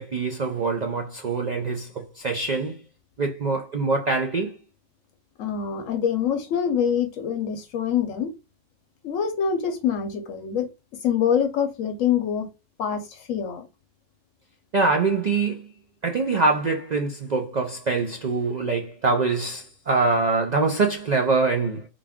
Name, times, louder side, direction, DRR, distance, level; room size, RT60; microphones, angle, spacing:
voice 1, 0.0-2.8 3.2-4.6 14.7-15.7 16.0-21.9, right 3 dB, 60° right, 0.4 m, -24 dB
voice 2, 5.4-8.3 9.0-10.7 11.0-12.5 12.8-13.7, left 8 dB, 80° left, 1.0 m, -25 dB
3.8 x 2.3 x 3.5 m
omnidirectional pair, 1.4 m